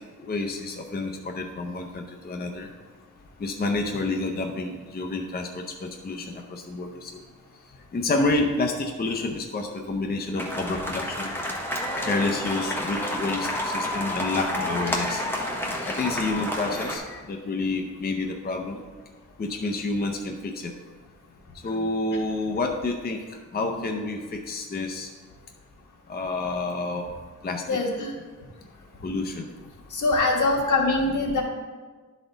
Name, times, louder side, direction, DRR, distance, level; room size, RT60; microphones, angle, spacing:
voice 1, 0.0-2.7 3.4-7.2 7.9-11.3 12.0-15.5 15.9-18.8 19.4-20.7 21.6-23.2 23.5-25.1 26.1-27.1 27.4-27.8 29.0-29.5 31.4-31.5, left 3 dB, 30° left, 3 dB, 0.6 m, -29 dB
sound 1, 10.4-17.0, left 1 dB, 5° left, 1.1 m, -29 dB
voice 2, 27.7-28.1 29.9-31.4, left 2 dB, 80° left, -1 dB, 1.5 m, -23 dB
11.5 x 4.1 x 3.9 m, 1.4 s
wide cardioid pair, 145°, 30 cm